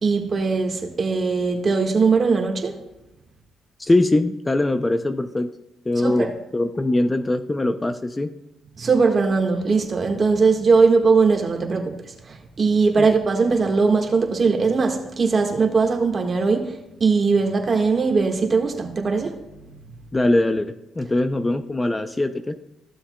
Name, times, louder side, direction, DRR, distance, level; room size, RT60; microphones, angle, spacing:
voice 1, 0.0-2.8 6.0-6.3 8.8-19.4, right 4 dB, 40° right, 1.5 m, -20 dB
voice 2, 3.8-5.5 5.9-8.3 13.0-13.1 20.1-22.5, left 2 dB, 20° left, 0.5 m, -22 dB
15.0 x 7.1 x 2.2 m
cardioid pair, 90°, 0 cm